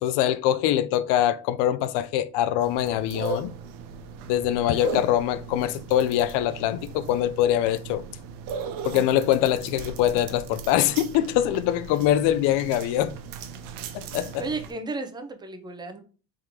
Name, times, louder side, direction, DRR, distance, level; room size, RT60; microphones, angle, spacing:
voice 1, 0.0-3.5 4.3-8.0 8.8-13.1 13.9-14.4, left 12 dB, 85° left, 0.5 m, -23 dB
sound 1, 2.6-14.7, right 5 dB, 90° right, 0.7 m, -38 dB
voice 2, 14.4-16.0, right 3 dB, 10° right, 0.5 m, -33 dB
3.7 x 3.5 x 2.9 m
cardioid pair, 120°, 40 cm